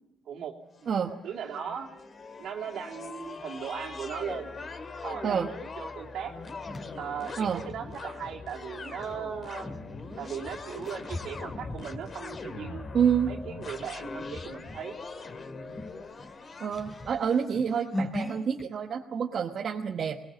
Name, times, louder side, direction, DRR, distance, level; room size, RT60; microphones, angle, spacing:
sound 1, 0.8-17.9, left 3 dB, 45° left, 2.2 m, -42 dB
voice 1, 1.2-1.9 2.4-4.5 5.0-6.3 7.0-9.7 10.2-12.9 13.3-15.0, right 8 dB, 75° right, 1 dB, 2.9 m, -38 dB
sound 2, 5.5-16.1, left 4 dB, 60° left, 5.1 m, -49 dB
sound 3, 6.0-8.0 9.0-13.2 13.7-13.9 14.3-15.0 15.3-15.4 15.7-18.7, left 1 dB, 30° left, 3.7 m, -40 dB
voice 2, 12.9-13.3 16.6-20.2, right 7 dB, 55° right, 2 dB, 1.2 m, -28 dB
21.5 x 19.5 x 7.3 m, 0.85 s
cardioid pair, 90°, 0 cm